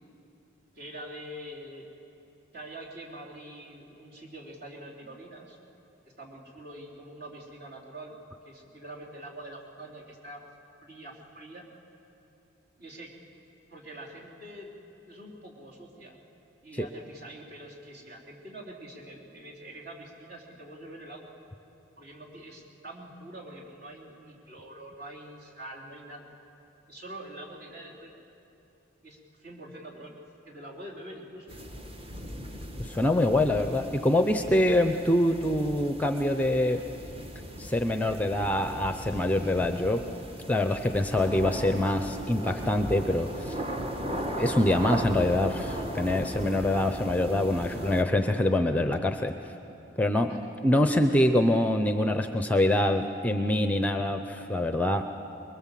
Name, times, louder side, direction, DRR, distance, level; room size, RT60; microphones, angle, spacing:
voice 1, 0.7-1.9 2.5-5.6 6.2-8.1 8.4-10.4 10.8-11.6 12.8-13.1 13.7-16.2 16.6-21.3 22.0-26.3 26.9-28.1 29.0-30.1 30.5-31.5 50.2-50.4, right 1 dB, 55° right, -3 dB, 3.7 m, -45 dB
sound 1, 31.5-48.0, right 1 dB, 30° right, 1.4 m, -37 dB
voice 2, 32.8-36.8 37.6-40.0 40.5-43.6 44.4-49.3 50.0-50.3 50.6-55.1, left 1 dB, 10° left, 7 dB, 0.6 m, -25 dB
24.0 x 22.0 x 7.5 m, 2.9 s
head